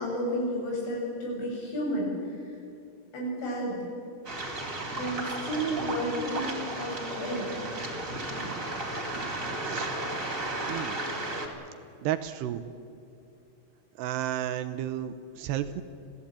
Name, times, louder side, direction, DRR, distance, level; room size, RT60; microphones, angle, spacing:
voice 1, 0.0-2.5 3.1-3.8 5.0-7.5, equal, 85° left, -2 dB, 9.2 m, -32 dB
Waves surf, 4.2-11.5, right 2 dB, 20° right, 2.9 m, -34 dB
voice 2, 10.7-11.0 12.0-12.6 14.0-15.8, right 11 dB, 80° right, 11 dB, 2.6 m, -32 dB
26.5 x 16.5 x 8.9 m, 2.5 s
omnidirectional pair, 5.3 m